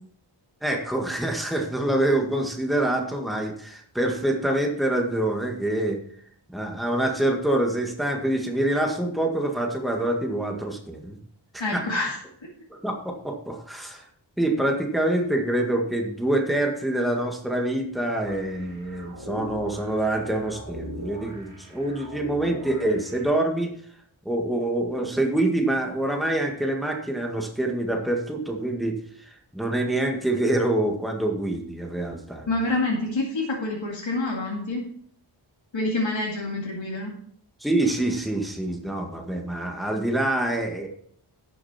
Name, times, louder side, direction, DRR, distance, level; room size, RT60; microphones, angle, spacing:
voice 1, 0.6-6.0 6.5-11.2 11.5-11.8 12.7-14.1 14.4-23.7 24.3-32.5 37.6-40.9, right 1 dB, ahead, 2 dB, 1.8 m, -26 dB
voice 2, 11.6-12.5 32.5-34.9 35.7-37.1, left 2 dB, 65° left, -2 dB, 2.2 m, -27 dB
sound 1, 18.2-23.2, right 1 dB, 40° right, 4.4 m, -40 dB
11.5 x 6.9 x 4.3 m, 0.62 s
wide cardioid pair, 55°, 48 cm